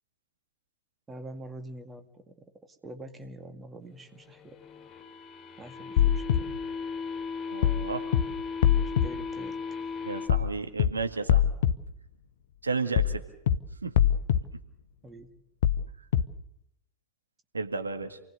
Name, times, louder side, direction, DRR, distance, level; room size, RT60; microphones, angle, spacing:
voice 1, 1.1-2.1 2.8-4.6 5.6-6.6 9.0-9.6 15.0-15.3, right 1 dB, 15° right, 7 dB, 2.1 m, -44 dB
sound 1, 4.3-10.3, left 5 dB, 25° left, 4.3 m, -37 dB
sound 2, 6.0-6.4 7.6-7.8 8.1-8.2 8.6-9.1 10.3-10.5 10.8-10.9 11.3-11.7 13.0-13.2 13.5-13.6 14.0-14.4 15.6-15.8 16.1-16.2, left 10 dB, 55° left, 0.9 m, -22 dB
voice 2, 7.5-8.1 10.0-11.4 12.6-13.2 13.8-13.9 17.5-18.2, right 4 dB, 75° right, 6 dB, 2.0 m, -32 dB
28.0 x 19.0 x 6.8 m, 0.77 s
figure-of-eight pair, 90°, 0 cm